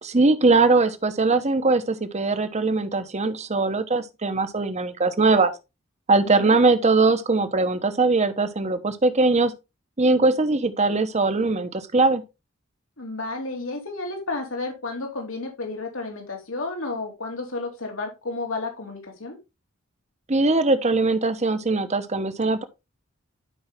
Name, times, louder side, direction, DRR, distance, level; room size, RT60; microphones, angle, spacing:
voice 1, 0.0-5.5 6.1-9.5 10.0-12.2 20.3-22.6, right 3 dB, 35° right, 1.0 m, -21 dB
voice 2, 6.2-6.6 13.0-19.4, left 3 dB, 80° left, 2.9 m, -32 dB
12.0 x 5.5 x 3.5 m
head